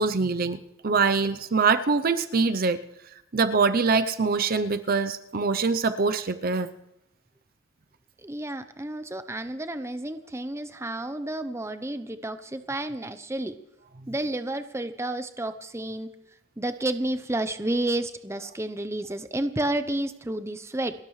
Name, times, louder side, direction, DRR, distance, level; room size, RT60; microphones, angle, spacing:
voice 1, 0.0-2.8 3.3-6.7, right 4 dB, 45° right, 10 dB, 0.6 m, -24 dB
voice 2, 8.2-13.6 14.1-16.1 16.6-20.9, right 1 dB, 15° right, 10 dB, 0.7 m, -31 dB
29.5 x 12.5 x 3.2 m, 0.87 s
head